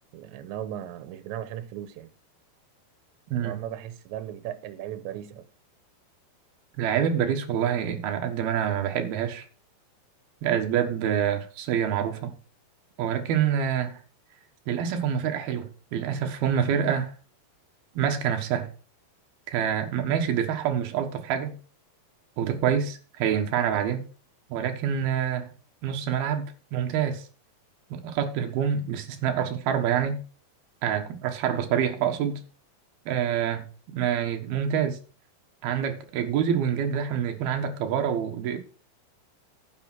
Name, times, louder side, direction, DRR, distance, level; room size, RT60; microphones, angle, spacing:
voice 1, 0.1-2.1 3.4-5.5, right 11 dB, 90° right, 3.1 m, -37 dB
voice 2, 3.3-3.6 6.8-9.4 10.4-12.3 13.0-14.0 14.7-17.1 17.9-18.7 19.5-21.6 22.4-24.0 24.5-25.5 25.8-27.3 27.9-30.2 30.8-32.4 33.1-33.7 33.9-35.0 35.6-38.6, right 8 dB, 65° right, 3.1 m, -26 dB
10.5 x 7.6 x 6.1 m
omnidirectional pair, 5.0 m